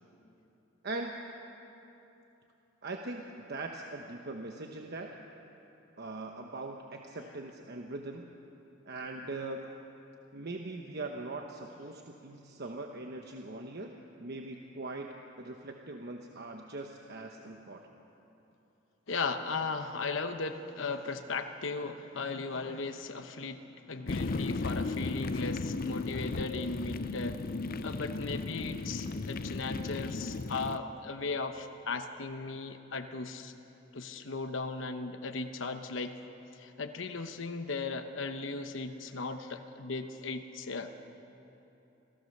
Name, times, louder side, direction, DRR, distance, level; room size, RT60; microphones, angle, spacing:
voice 1, 0.8-1.2 2.8-5.1 6.0-8.2 8.8-9.6 10.3-13.9 14.2-17.8, right 2 dB, 55° right, 2 dB, 1.1 m, -41 dB
voice 2, 19.1-27.4 27.8-33.5 33.9-36.2 36.6-40.9, left 3 dB, 80° left, 6 dB, 1.0 m, -37 dB
sound 1, 24.1-30.8, left 3 dB, 50° left, 0.5 m, -35 dB
26.5 x 16.5 x 6.7 m, 3.0 s
head